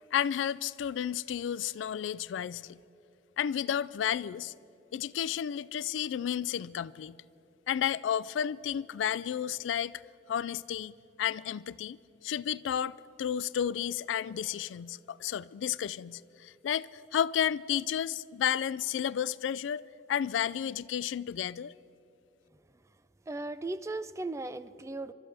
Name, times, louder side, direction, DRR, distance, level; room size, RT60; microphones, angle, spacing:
voice 1, 0.1-2.8 3.4-4.5 4.9-7.2 7.7-9.9 10.3-10.9 11.2-12.0 12.2-21.7, left 9 dB, 85° left, 0.3 m, -32 dB
voice 2, 23.3-25.1, right 2 dB, 15° right, 0.3 m, -37 dB
28.0 x 13.0 x 3.4 m
head